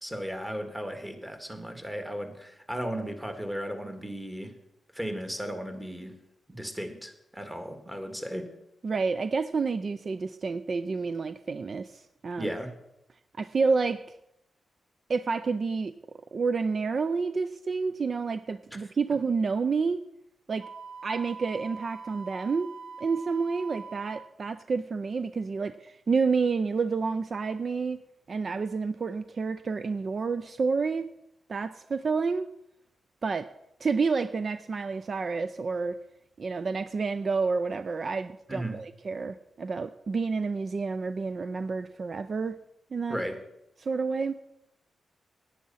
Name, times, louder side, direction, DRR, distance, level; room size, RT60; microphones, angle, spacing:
voice 1, 0.0-4.5 4.9-6.2 6.5-8.5 12.4-12.8 18.7-18.8 38.5-38.8 43.1-43.4, equal, 10° right, 7 dB, 2.0 m, -35 dB
voice 2, 8.8-12.5 13.4-14.2 15.1-15.9 16.3-20.0 20.5-20.7 21.0-22.7 23.0-28.0 28.3-31.1 31.5-32.5 33.2-33.5 33.8-36.0 36.4-42.6 42.9-43.2 43.8-44.4, right 4 dB, 50° right, 12 dB, 0.4 m, -29 dB
Wind instrument woodwind instrument, 20.6-24.3, right 4 dB, 90° right, 0.7 m, -43 dB
10.0 x 9.5 x 5.6 m, 0.82 s
cardioid pair, 70°, 0 cm